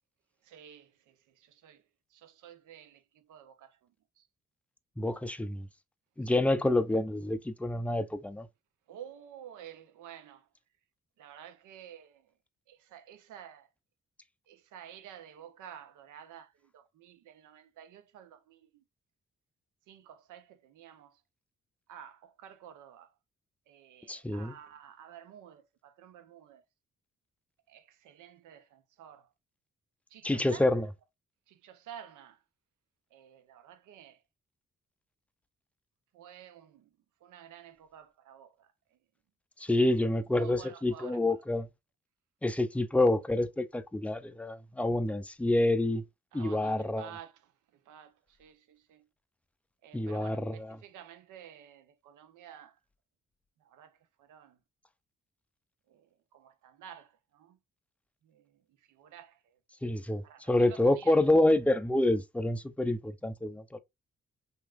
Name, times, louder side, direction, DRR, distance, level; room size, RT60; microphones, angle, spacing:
voice 1, 0.5-1.8 2.1-3.8 4.2-4.3 8.9-10.4 11.2-12.2 12.7-13.7 14.5-18.8 19.9-21.1 21.9-23.1 23.7-26.6 27.7-29.3 30.1-30.6 31.5-32.4 33.1-34.2 36.1-36.9 37.2-38.7 40.3-41.2 46.3-47.3 47.9-48.1 48.4-49.0 49.8-52.7 53.6-54.6 55.9-56.0 56.3-57.6 58.2-58.4 58.9-59.4 60.2-61.2, right 9 dB, 75° right, 0.6 m, -51 dB
voice 2, 5.0-5.7 6.2-8.5 24.1-24.5 30.2-30.9 39.6-41.7 42.4-46.0 46.3-47.1 49.9-50.8 59.8-63.8, left 1 dB, 5° left, 0.4 m, -28 dB
2.9 x 2.5 x 2.3 m
hypercardioid pair, 45°, 31 cm